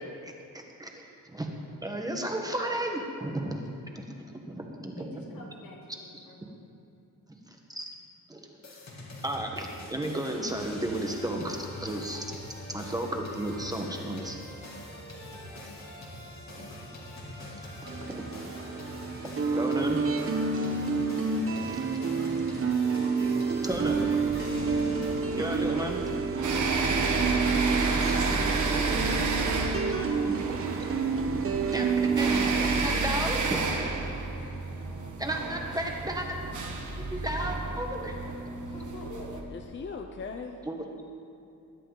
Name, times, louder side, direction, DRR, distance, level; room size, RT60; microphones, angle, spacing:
voice 1, 0.2-1.5 1.8-3.6 3.9-4.1 4.3-5.4 7.5-7.9 8.3-8.4 9.2-12.3 12.7-14.4 16.6-16.7 18.1-18.3 18.6-18.7 19.2-20.0 21.7-21.9 22.5-22.7 23.3-24.0 25.3-26.0 28.1-28.2 30.2-30.4 31.7-32.4 32.6-33.6 35.2-36.4 37.1-38.1 40.6-40.8, right 1 dB, 10° right, 1 dB, 1.3 m, -34 dB
voice 2, 5.3-6.6 29.7-30.3 33.9-35.1 38.6-39.5 40.7-40.9, left 2 dB, 85° left, -2 dB, 3.1 m, -48 dB
sound 1, 8.6-25.2, left 1 dB, 55° left, 2.7 m, -43 dB
sound 2, 17.9-33.0, right 5 dB, 40° right, 1.0 m, -29 dB
sound 3, 23.7-39.4, right 3 dB, 60° right, 1.7 m, -31 dB
voice 3, 29.0-29.8 32.3-33.1 39.5-40.6, left 5 dB, 35° left, 4 dB, 0.7 m, -41 dB
21.0 x 11.0 x 4.0 m, 2.7 s
wide cardioid pair, 155°, 33 cm